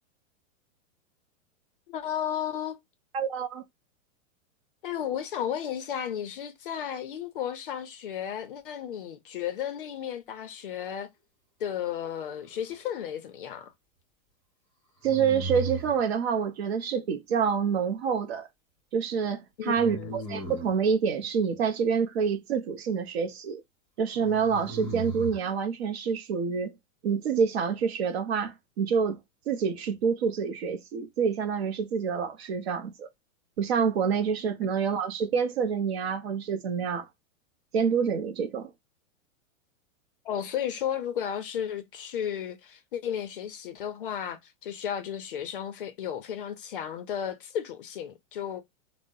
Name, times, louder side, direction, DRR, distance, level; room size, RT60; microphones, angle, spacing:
voice 1, 1.9-2.8 4.8-11.1 11.6-13.7 19.6-20.1 40.2-48.6, left 9 dB, 45° left, 0.4 m, -34 dB
voice 2, 3.1-3.6 15.0-18.5 18.9-23.6 24.0-26.7 27.0-29.2 29.5-33.1 33.6-37.1 37.7-38.7, right 6 dB, 50° right, 0.6 m, -27 dB
sound 1, 12.3-13.0 15.0-16.0 19.8-20.8 24.1-25.4, right 2 dB, 5° left, 1.0 m, -36 dB
2.6 x 2.0 x 3.6 m
supercardioid pair, 170°, 40 cm